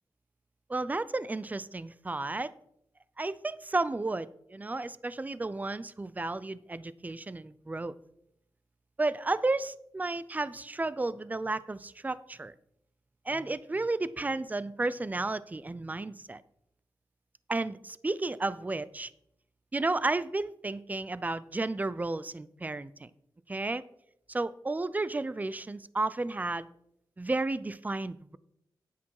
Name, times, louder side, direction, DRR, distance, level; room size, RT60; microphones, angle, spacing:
voice 1, 0.7-2.5 3.2-7.9 9.0-12.5 13.3-16.4 17.5-19.1 19.7-23.1 23.5-23.8 24.3-26.7 27.2-28.4, right 2 dB, 20° right, 17 dB, 0.5 m, -32 dB
9.5 x 8.5 x 4.8 m, 0.76 s
cardioid pair, 75°, 8 cm